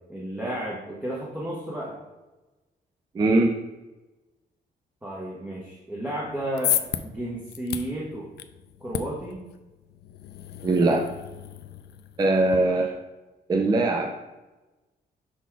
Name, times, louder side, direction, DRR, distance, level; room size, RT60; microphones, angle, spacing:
voice 1, 0.1-2.0 5.0-8.3 8.8-9.4 12.3-12.7, right 1 dB, 10° right, -5 dB, 0.9 m, -33 dB
voice 2, 3.1-3.5 10.6-11.1 12.2-13.0 13.5-14.1, right 2 dB, 25° right, 3 dB, 0.4 m, -21 dB
sound 1, 6.2-12.6, left 11 dB, 75° left, 0.4 m, -34 dB
5.7 x 4.1 x 4.6 m, 1.1 s
wide cardioid pair, 160°, 17 cm